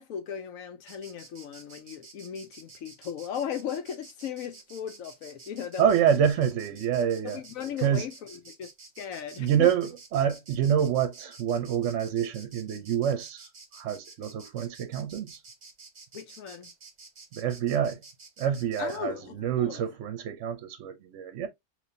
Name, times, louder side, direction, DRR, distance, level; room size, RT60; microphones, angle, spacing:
voice 1, 0.0-5.9 7.2-8.7 9.0-9.7 16.1-16.7 18.8-19.8, left 8 dB, 70° left, 0.9 m, -37 dB
Insect, 0.9-19.0, right 4 dB, 35° right, 0.8 m, -50 dB
voice 2, 5.8-7.4 7.8-8.1 9.4-15.4 17.3-18.0 18.4-21.5, right 9 dB, 60° right, 0.9 m, -27 dB
3.4 x 3.1 x 2.5 m
omnidirectional pair, 1.6 m